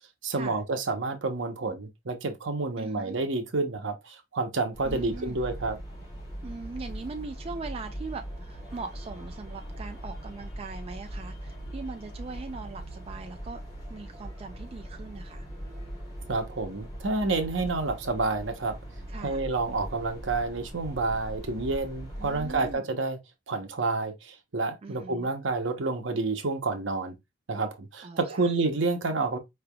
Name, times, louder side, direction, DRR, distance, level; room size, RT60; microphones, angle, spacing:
voice 1, 0.2-5.8 16.3-18.8 19.2-23.2 23.5-27.2 27.5-29.4, right 3 dB, 70° right, 0.9 m, -29 dB
voice 2, 2.8-3.2 4.8-5.4 6.4-13.6 13.9-15.5 19.1-19.4 22.2-22.8 24.8-25.3 28.0-28.5, right 4 dB, 30° right, 0.3 m, -40 dB
sound 1, 4.7-22.7, right 1 dB, 20° left, 2.8 m, -40 dB
4.9 x 3.3 x 2.2 m
head